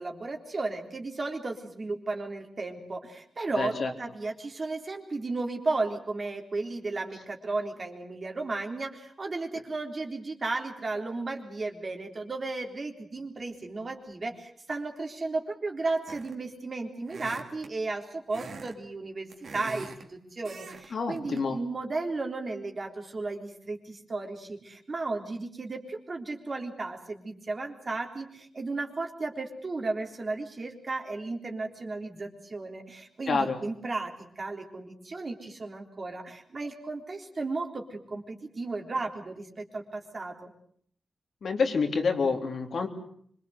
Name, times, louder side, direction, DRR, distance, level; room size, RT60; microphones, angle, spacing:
voice 1, 0.0-40.5, right 3 dB, 35° right, 2 dB, 3.8 m, -34 dB
voice 2, 3.6-3.9 20.9-21.6 33.3-33.6 41.4-42.9, left 4 dB, 60° left, 4 dB, 3.4 m, -27 dB
sound 1, 16.1-16.5 17.1-17.7 18.3-18.7 19.1-20.0 20.4-20.9 21.2-21.4, right 4 dB, 60° right, 3.2 m, -43 dB
25.5 x 23.5 x 8.1 m, 0.64 s
wide cardioid pair, 120°, 0 cm